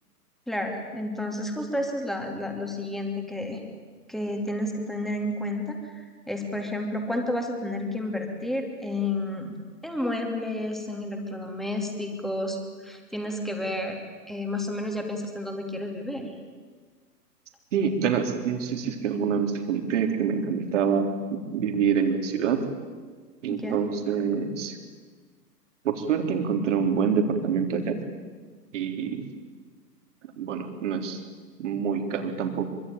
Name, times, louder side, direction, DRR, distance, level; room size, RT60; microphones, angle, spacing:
voice 1, 0.5-3.6 4.1-9.6 9.8-12.6 12.8-14.0 14.3-16.3 23.5-23.8, left 1 dB, ahead, 2 dB, 3.1 m, -31 dB
voice 2, 17.7-22.6 23.4-24.8 25.8-28.0 28.7-29.3 30.4-31.2 31.6-32.7, right 6 dB, 45° right, 5 dB, 3.7 m, -26 dB
25.0 x 24.5 x 9.1 m, 1.5 s
figure-of-eight pair, 120°, 48 cm